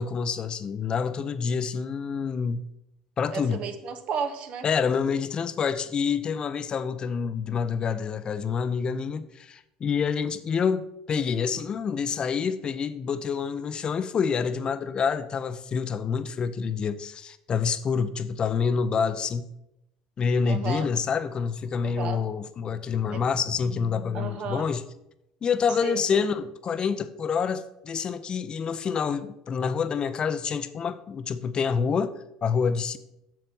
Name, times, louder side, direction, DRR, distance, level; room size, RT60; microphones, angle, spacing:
voice 1, 0.0-2.7 3.2-3.6 4.6-19.5 20.2-24.8 25.4-33.0, left 6 dB, 40° left, 0.7 m, -27 dB
voice 2, 3.3-4.7 20.4-20.9 21.8-22.2 23.1-23.2 24.1-24.7 25.7-26.2, right 5 dB, 55° right, 1.1 m, -33 dB
7.6 x 6.8 x 5.4 m
hypercardioid pair, 80°, 2 cm